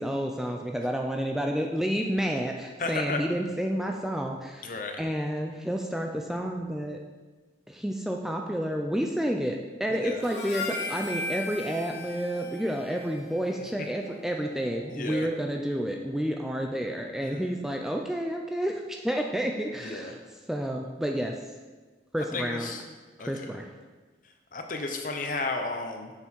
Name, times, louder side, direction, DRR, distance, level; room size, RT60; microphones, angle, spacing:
voice 1, 0.0-7.0 7.7-20.2 20.5-21.4 22.1-22.7 23.2-23.7, equal, ahead, 2 dB, 0.4 m, -30 dB
voice 2, 2.8-3.3 4.6-5.0 9.9-10.2 14.9-15.3 17.2-17.5 19.8-20.1 22.3-22.8 23.2-23.5 24.5-26.1, left 3 dB, 45° left, 4 dB, 0.8 m, -33 dB
Harmonica, 10.2-14.7, left 2 dB, 80° left, 1.5 m, -38 dB
6.9 x 6.9 x 4.6 m, 1.3 s
head